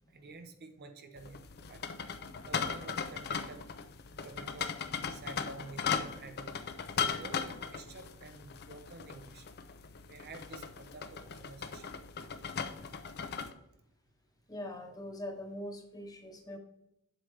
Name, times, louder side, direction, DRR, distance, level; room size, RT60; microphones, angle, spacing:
voice 1, 0.1-1.4 1.7-1.8 2.4-3.7 4.2-6.5 7.1-9.5 10.1-11.9, right 3 dB, 50° right, 6 dB, 0.8 m, -50 dB
sound 1, 1.2-13.5, left 6 dB, 50° left, 0.6 m, -38 dB
voice 2, 14.5-16.6, left 1 dB, 20° left, 3 dB, 1.1 m, -44 dB
7.9 x 7.9 x 3.2 m, 0.83 s
head